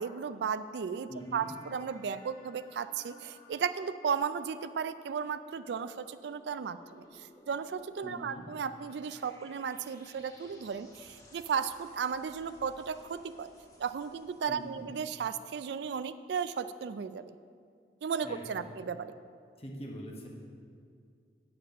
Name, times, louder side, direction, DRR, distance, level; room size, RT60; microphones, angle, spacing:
voice 1, 0.0-13.5 13.8-17.4 18.0-19.1, right 6 dB, 80° right, 13 dB, 0.3 m, -35 dB
voice 2, 1.1-1.5 8.0-8.4 14.5-14.8 18.2-18.4 19.6-20.3, equal, 35° left, -1 dB, 1.3 m, -43 dB
sound 1, 1.2-14.9, left 1 dB, 20° left, 1.1 m, -59 dB
9.0 x 7.7 x 5.2 m, 2.2 s
head